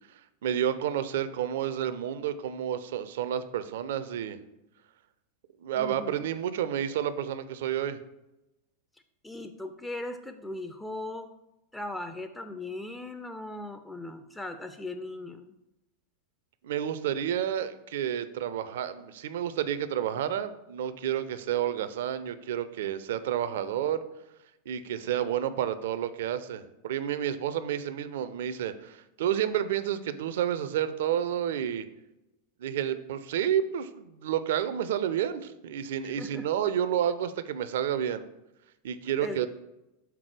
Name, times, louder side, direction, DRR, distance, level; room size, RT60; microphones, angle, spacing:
voice 1, 0.4-4.4 5.6-8.0 16.6-24.0 24.7-31.9 32.6-38.2 38.8-39.5, right 10 dB, 55° right, 13 dB, 0.4 m, -30 dB
voice 2, 5.8-6.2 9.2-11.3 11.7-15.6 36.0-36.5 39.2-39.5, left 2 dB, 5° left, 7 dB, 0.4 m, -38 dB
5.9 x 3.7 x 4.7 m, 0.93 s
figure-of-eight pair, 90°, 0 cm